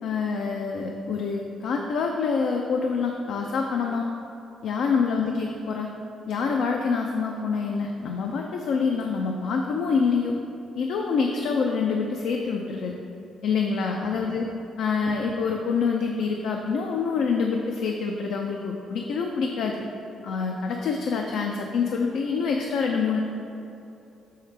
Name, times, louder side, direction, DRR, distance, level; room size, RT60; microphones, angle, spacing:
voice 1, 0.0-4.1 4.6-5.9 6.3-10.3 10.8-12.9 13.4-14.5 14.8-19.8 20.2-23.2, left 5 dB, 75° left, 2 dB, 0.4 m, -26 dB
6.4 x 5.6 x 3.3 m, 2.8 s
cardioid pair, 90°, 0 cm